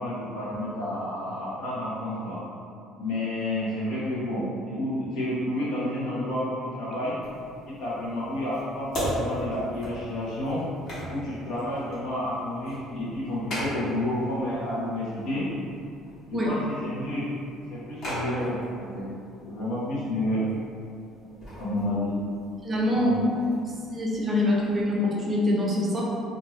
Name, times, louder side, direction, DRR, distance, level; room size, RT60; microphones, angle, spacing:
voice 1, 0.0-2.4 2.9-7.2 7.7-10.6 11.1-15.5 16.3-17.2 17.7-19.1 19.4-20.4 21.5-22.1 22.9-23.4, left 1 dB, 75° left, -7 dB, 1.0 m, -30 dB
sound 1, 7.2-24.8, equal, 45° left, 1.3 m, -39 dB
voice 2, 22.6-23.1 23.6-26.0, left 1 dB, 25° right, -4 dB, 0.5 m, -25 dB
2.6 x 2.5 x 3.1 m, 2.4 s
cardioid pair, 135°, 0 cm